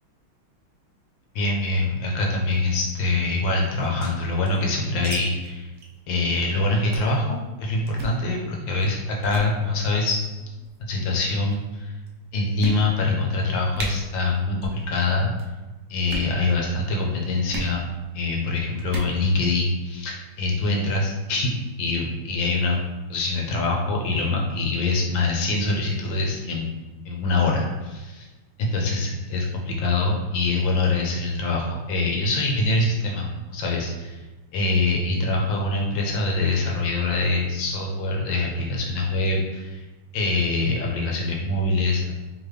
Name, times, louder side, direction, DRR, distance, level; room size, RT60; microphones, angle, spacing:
voice 1, 1.3-5.7 6.1-10.2 10.8-11.9 12.3-15.3 15.9-17.9 18.1-22.8 23.1-26.7 27.0-28.3 28.6-34.2 34.5-39.8 40.1-42.1, left 2 dB, 75° left, -1 dB, 1.5 m, -24 dB
sound 1, 3.8-5.2 5.4-5.5 5.8-6.0 6.3-6.5 6.9-7.2 7.9-8.2 8.8-9.0 9.2-9.5 10.4-10.8 11.5-11.6 12.1-12.2 12.6-13.2 13.4-13.5 13.7-13.9 14.5-14.8 15.1-15.5 16.0-16.3 17.5-17.7 18.8-19.1, right 1 dB, 65° right, 0.8 m, -34 dB
4.0 x 3.0 x 3.1 m, 1.1 s
omnidirectional pair, 2.2 m